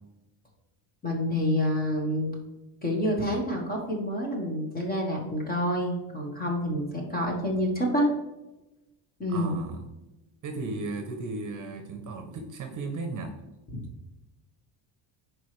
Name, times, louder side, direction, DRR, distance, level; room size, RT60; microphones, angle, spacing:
voice 1, 1.0-2.3 2.8-8.1 9.2-9.6 13.7-13.8, equal, 20° left, 0 dB, 1.4 m, -28 dB
voice 2, 9.3-9.9 10.4-13.3, right 3 dB, 40° right, 5 dB, 0.9 m, -35 dB
10.0 x 4.7 x 3.3 m, 1.0 s
cardioid pair, 175°, 49 cm